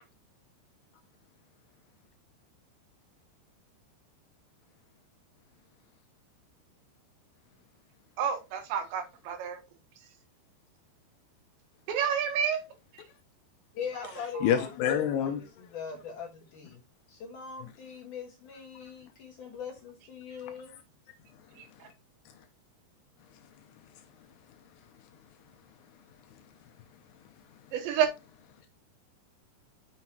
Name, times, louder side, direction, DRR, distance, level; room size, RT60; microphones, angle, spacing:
voice 1, 8.2-9.6 11.9-12.6 21.6-21.9 27.7-28.1, right 8 dB, 75° right, 3.6 m, -29 dB
voice 2, 13.8-14.7 15.2-15.3 15.7-16.8 17.1-20.8, left 6 dB, 60° left, 2.3 m, -41 dB
voice 3, 14.4-15.7 17.6-17.7 18.8-18.9 20.4-20.8 21.3-21.9 22.3-22.5 23.2-27.7, left 9 dB, 75° left, 2.6 m, -35 dB
7.4 x 6.4 x 3.0 m
omnidirectional pair, 5.2 m